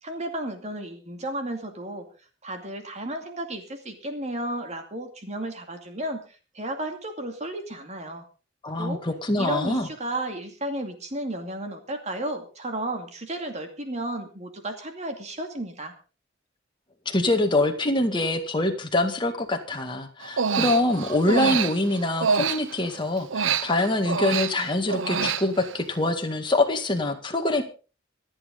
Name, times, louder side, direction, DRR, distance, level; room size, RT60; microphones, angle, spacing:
voice 1, 0.0-2.1 2.4-6.2 6.5-8.2 8.8-9.0 9.4-15.9, right 1 dB, 35° right, 5 dB, 2.4 m, -33 dB
voice 2, 8.6-9.9 17.1-27.6, left 2 dB, 25° left, 4 dB, 2.0 m, -24 dB
Human voice, 20.2-22.9 23.3-25.8, right 6 dB, 80° right, 0.8 m, -26 dB
26.0 x 8.8 x 3.8 m, 0.35 s
head